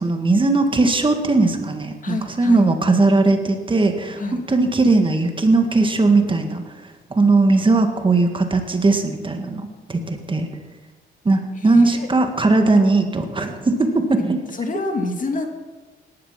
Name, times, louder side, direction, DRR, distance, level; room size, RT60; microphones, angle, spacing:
voice 1, 0.0-4.2 4.5-6.6 7.1-10.5 11.3-14.4, right 3 dB, 25° right, 6 dB, 1.9 m, -18 dB
voice 2, 2.0-2.7 4.2-4.4 11.6-12.1 14.5-15.5, left 3 dB, 40° left, 4 dB, 2.2 m, -27 dB
18.0 x 11.5 x 5.9 m, 1.3 s
cardioid pair, 90°, 20 cm